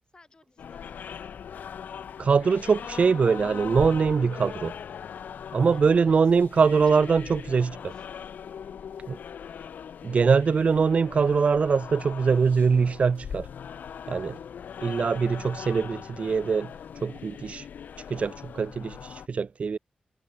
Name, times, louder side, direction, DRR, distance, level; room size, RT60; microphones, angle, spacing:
voice 1, 0.1-1.2 5.7-6.2 6.7-8.1, left 3 dB, 30° left, 7.3 m, -54 dB
sound 1, 0.6-19.3, left 8 dB, 90° left, 0.6 m, -40 dB
voice 2, 2.2-4.7 5.5-7.9 9.1-9.2 10.0-13.5 14.1-14.4 14.8-16.7 17.0-17.6 18.1-19.8, right 5 dB, 50° right, 0.4 m, -23 dB
wide cardioid pair, 105°, 3 cm